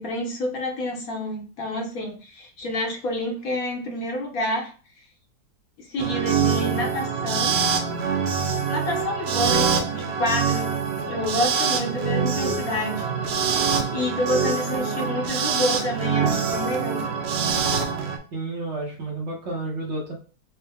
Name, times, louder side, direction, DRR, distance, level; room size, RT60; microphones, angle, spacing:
voice 1, 0.0-4.7 5.9-7.6 8.7-10.8 11.1-13.1 13.9-17.1, left 1 dB, 65° left, 2 dB, 1.1 m, -28 dB
sound 1, 6.0-18.2, right 6 dB, 85° right, 0.5 m, -24 dB
voice 2, 18.3-20.1, right 2 dB, 55° right, -1 dB, 0.9 m, -31 dB
4.4 x 2.0 x 3.3 m, 0.38 s
omnidirectional pair, 1.8 m